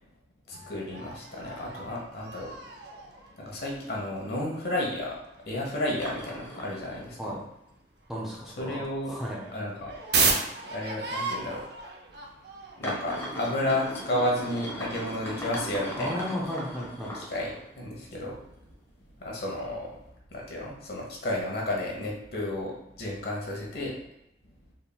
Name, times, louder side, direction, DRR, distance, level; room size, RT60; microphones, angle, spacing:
voice 1, 0.5-2.5 3.4-7.4 8.6-9.2 9.5-11.6 12.8-16.2 17.1-18.4 19.2-19.9 20.3-23.9, left 1 dB, 60° left, -2 dB, 1.1 m, -32 dB
sound 1, 0.5-7.2 7.5-7.6 8.0-16.2, right 4 dB, 60° right, 0.6 m, -35 dB
sound 2, 6.0-7.4 7.8-7.9 8.6-8.7 9.2-9.4 9.7-9.8 10.7-10.8 11.6-11.7 12.8-17.7 18.1-18.8 19.2-19.3, equal, 15° left, 0.9 m, -39 dB
voice 2, 8.1-8.8 9.0-9.4 15.9-17.1, equal, ahead, -4 dB, 0.6 m, -34 dB
4.2 x 3.5 x 2.3 m, 0.82 s
head